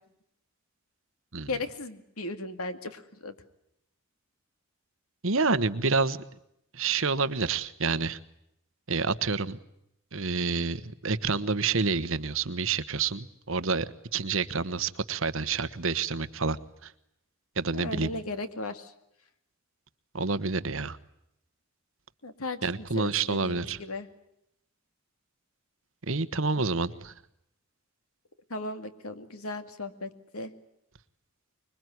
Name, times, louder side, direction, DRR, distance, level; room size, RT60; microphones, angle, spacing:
voice 1, 1.3-3.4 17.7-18.9 22.2-24.1 28.5-30.5, left 2 dB, 80° left, 9 dB, 2.3 m, -37 dB
voice 2, 5.2-6.2 6.7-8.2 8.9-9.6 10.1-16.9 17.6-18.1 20.1-21.0 22.6-23.8 26.1-27.1, right 4 dB, 60° right, 14 dB, 1.2 m, -28 dB
25.5 x 22.5 x 9.5 m, 0.80 s
head